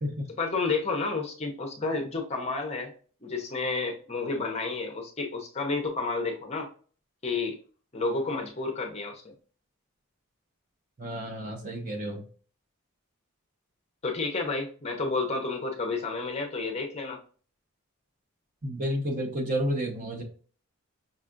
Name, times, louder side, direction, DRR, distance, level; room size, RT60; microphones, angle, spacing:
voice 1, 0.4-2.9 3.2-6.7 7.2-7.6 7.9-9.3 14.0-17.2, left 3 dB, 30° left, 2 dB, 0.6 m, -30 dB
voice 2, 11.0-12.2 18.6-20.2, equal, 35° right, 2 dB, 0.8 m, -31 dB
5.5 x 2.4 x 2.5 m, 0.41 s
head